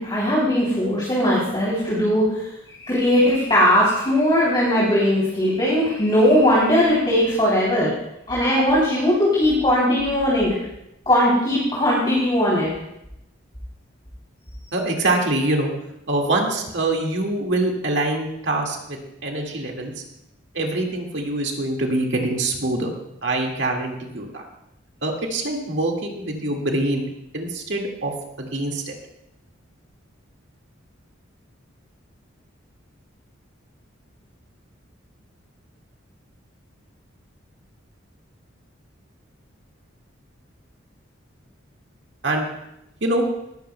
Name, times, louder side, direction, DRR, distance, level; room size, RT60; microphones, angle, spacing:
voice 1, 0.0-7.9 8.3-10.5 11.1-12.7, equal, 25° left, -6 dB, 3.1 m, -19 dB
voice 2, 14.7-15.7 16.1-19.9 20.5-22.9 23.2-24.4 25.0-27.1 27.3-28.1 28.4-29.0 42.2-42.5 43.0-43.2, right 2 dB, 60° right, 0 dB, 1.9 m, -24 dB
18.5 x 14.0 x 2.2 m, 0.83 s
head